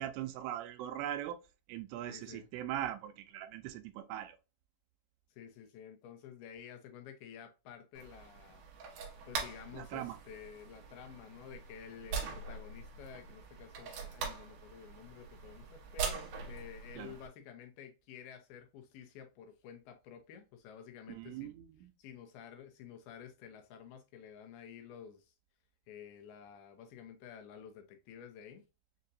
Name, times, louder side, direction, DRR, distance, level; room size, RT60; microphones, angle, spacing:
voice 1, 0.0-1.4 1.7-4.4 9.7-10.2 17.0-17.1 21.1-21.9, right 12 dB, 85° right, 2.7 m, -40 dB
voice 2, 2.1-2.5 5.3-8.6 9.2-21.5 22.0-25.3 25.9-28.6, left 8 dB, 80° left, 2.5 m, -51 dB
sound 1, 7.9-17.3, right 5 dB, 65° right, 2.1 m, -43 dB
6.6 x 2.7 x 2.5 m
omnidirectional pair, 4.7 m